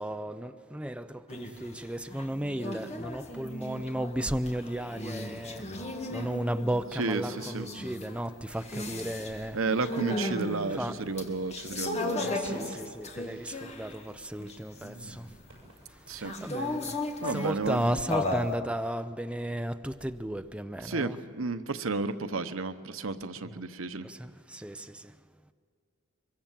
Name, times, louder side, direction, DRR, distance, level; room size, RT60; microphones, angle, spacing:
voice 1, 0.0-5.7 6.1-9.6 10.8-10.9 12.2-15.3 15.9-17.0 17.3-21.2 23.5-23.6 24.0-25.1, right 1 dB, 5° right, 0.5 m, -34 dB
sound 1, 1.3-1.7 2.1-14.0 14.4-15.3 16.2-18.6, left 1 dB, 35° left, 1.9 m, -36 dB
voice 2, 7.0-7.7 9.5-12.3 16.1-16.5 17.2-17.8 20.8-24.1, right 3 dB, 85° right, 1.0 m, -32 dB
sound 2, 12.4-13.8 14.1-14.2 15.5-16.1, right 1 dB, 65° right, 7.1 m, -49 dB
23.5 x 23.0 x 7.5 m
head